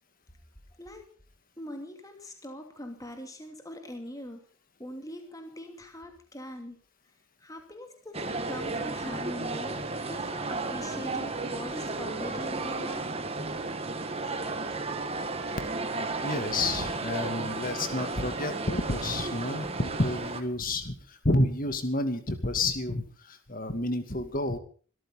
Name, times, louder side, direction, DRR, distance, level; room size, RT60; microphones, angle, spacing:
voice 1, 0.8-1.1 1.6-4.4 4.8-6.8 7.4-9.8 10.1-13.1, left 1 dB, 15° left, 5 dB, 2.7 m, -42 dB
sound 1, 8.1-20.4, right 3 dB, 30° right, 1.8 m, -33 dB
voice 2, 16.2-24.6, left 2 dB, 40° left, 9 dB, 2.4 m, -30 dB
24.0 x 14.0 x 4.0 m, 0.42 s
head